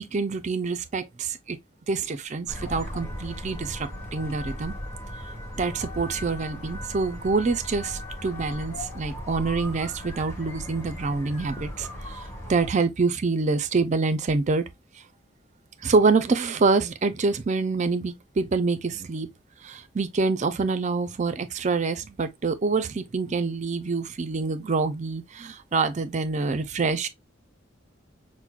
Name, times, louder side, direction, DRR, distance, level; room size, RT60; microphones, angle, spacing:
voice 1, 0.0-1.6 1.9-4.7 5.5-14.6 15.8-19.3 19.6-27.1, right 4 dB, 40° right, 0.4 m, -26 dB
sound 1, 2.5-12.7, left 1 dB, 15° left, 1.3 m, -37 dB
5.9 x 2.1 x 2.4 m
head